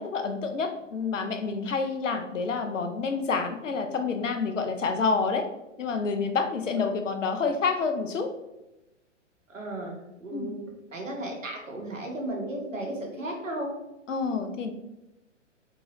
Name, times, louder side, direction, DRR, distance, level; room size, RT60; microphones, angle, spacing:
voice 1, 0.0-5.5 5.8-8.3 10.3-10.5 14.1-14.7, left 4 dB, 75° left, 8 dB, 0.6 m, -28 dB
voice 2, 9.5-13.7, right 1 dB, 85° right, 0 dB, 1.1 m, -35 dB
3.7 x 2.9 x 2.9 m, 0.96 s
figure-of-eight pair, 115°, 38 cm